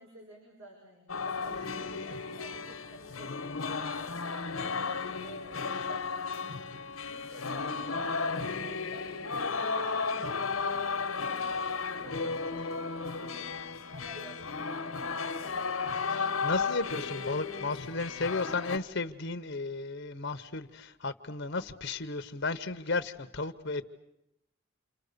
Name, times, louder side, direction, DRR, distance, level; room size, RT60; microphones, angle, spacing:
voice 1, 0.0-4.2 4.7-6.6 7.1-11.2 12.0-16.6, equal, 85° right, -1 dB, 7.1 m, -52 dB
sound 1, 1.1-18.8, left 4 dB, 80° left, 1.4 m, -34 dB
voice 2, 11.6-11.9 16.1-24.0, left 3 dB, 60° left, 10 dB, 1.0 m, -34 dB
29.0 x 26.5 x 6.8 m, 0.86 s
head